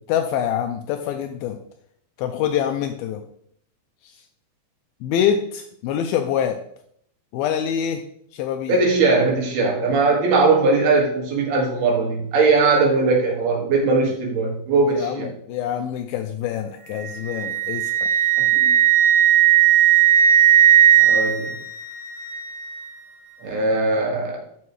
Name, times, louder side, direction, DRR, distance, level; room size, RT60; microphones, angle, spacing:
voice 1, 0.1-1.6 2.2-3.2 4.0-4.1 5.0-6.6 7.3-8.0 8.3-8.8 14.9-17.9 18.2-18.3, left 9 dB, 80° left, 6 dB, 2.3 m, -25 dB
voice 2, 8.7-15.3 18.4-18.7 21.0-21.5 23.4-24.4, right 3 dB, 75° right, -1 dB, 3.8 m, -20 dB
Wind instrument woodwind instrument, 17.0-22.9, right 11 dB, 25° right, 2.5 m, -17 dB
13.0 x 5.5 x 3.1 m, 0.69 s
omnidirectional pair, 4.5 m